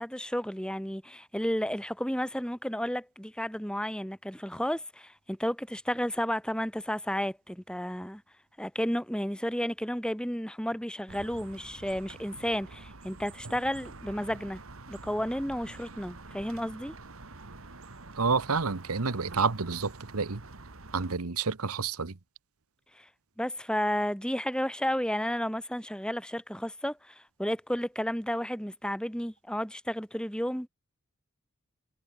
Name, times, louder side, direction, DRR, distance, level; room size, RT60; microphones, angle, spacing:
voice 1, 0.0-8.2 8.6-14.6 14.9-16.9 22.9-23.1 23.4-30.7, equal, 5° left, 3.4 m, -32 dB
sound 1, 11.1-21.2, right 3 dB, 70° right, 1.9 m, -47 dB
voice 2, 18.1-20.4 20.9-22.2, right 5 dB, 85° right, 1.1 m, -29 dB
head